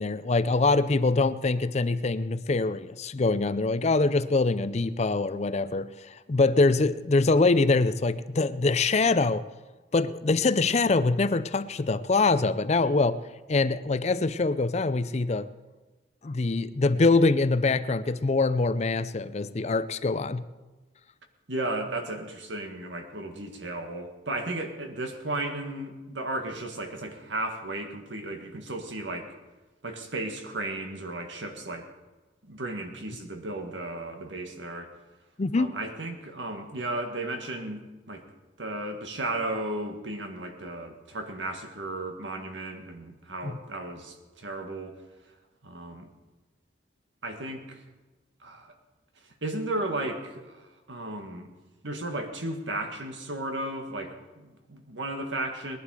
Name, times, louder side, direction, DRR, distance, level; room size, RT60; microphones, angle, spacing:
voice 1, 0.0-9.5 9.9-13.2 13.5-15.5 16.2-20.4 35.4-35.7 43.4-43.5, left 3 dB, 35° left, 0.5 m, -24 dB
voice 2, 21.5-29.3 29.8-31.9 32.4-34.9 35.6-38.2 38.6-45.0 45.6-46.1 47.2-47.8 48.4-48.7 49.4-51.5 51.8-55.8, right 2 dB, 80° right, 1.9 m, -34 dB
20.0 x 11.5 x 4.9 m
head